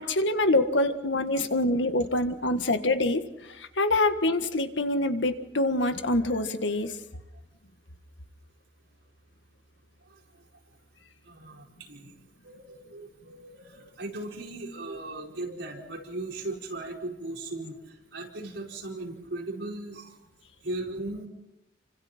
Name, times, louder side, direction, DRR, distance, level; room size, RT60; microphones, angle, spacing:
voice 1, 0.0-3.2 3.6-6.9, left 2 dB, 85° left, 8 dB, 1.7 m, -25 dB
voice 2, 11.3-12.1 12.4-17.8 18.1-20.1 20.6-21.3, right 2 dB, 75° right, -1 dB, 5.2 m, -37 dB
29.5 x 25.5 x 4.5 m, 0.91 s
head